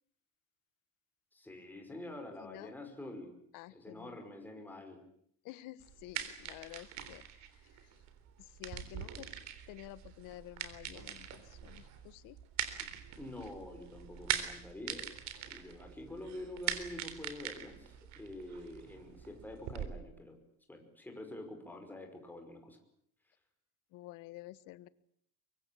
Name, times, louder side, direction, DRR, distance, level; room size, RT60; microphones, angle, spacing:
voice 1, 1.3-3.3 3.7-5.0 12.8-12.9 13.2-15.1 15.5-20.4 20.7-22.8, left 1 dB, 5° left, 4 dB, 5.4 m, -47 dB
voice 2, 2.4-2.7 3.5-4.2 5.4-7.9 8.4-9.3 9.7-12.4 23.9-24.9, left 16 dB, 65° left, 16 dB, 1.5 m, -51 dB
sound 1, 5.8-19.9, right 10 dB, 55° right, 3.8 m, -42 dB
24.0 x 23.5 x 8.5 m, 0.68 s
cardioid pair, 160°, 34 cm